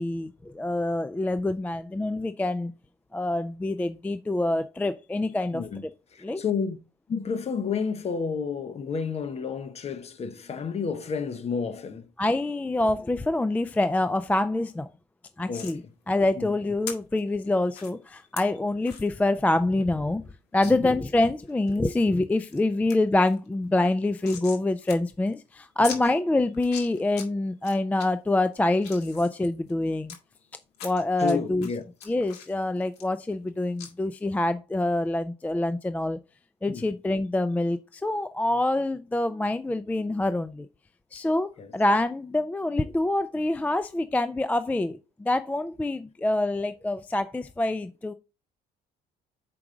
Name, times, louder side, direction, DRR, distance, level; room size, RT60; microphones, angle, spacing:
voice 1, 0.0-2.7 3.1-5.6 6.2-6.4 12.2-14.9 15.4-20.2 20.5-30.2 30.8-31.7 32.1-36.2 36.6-40.7 41.1-48.1, left 2 dB, 10° left, 0.3 m, -26 dB
voice 2, 6.1-6.8 7.1-12.1 15.5-15.8 16.4-16.5 20.7-20.9 31.2-31.9 36.7-36.9 41.2-41.3 41.6-41.7, left 6 dB, 40° left, 1.0 m, -31 dB
sound 1, 15.5-15.8 16.9-17.0 17.7-17.9 18.4-18.5 18.9-19.1 19.5-19.6 19.8-19.9 20.6-20.7 21.2-21.8 22.2-22.6 22.9-23.0 23.3-24.6 24.9-25.0 25.3-25.4 25.8-26.0 26.5-27.3 27.6-28.1 28.5-30.2 30.7-31.3 31.6-33.5 33.8-33.9, left 8 dB, 90° left, 1.8 m, -40 dB
6.1 x 4.7 x 3.8 m
cardioid pair, 110°, 17 cm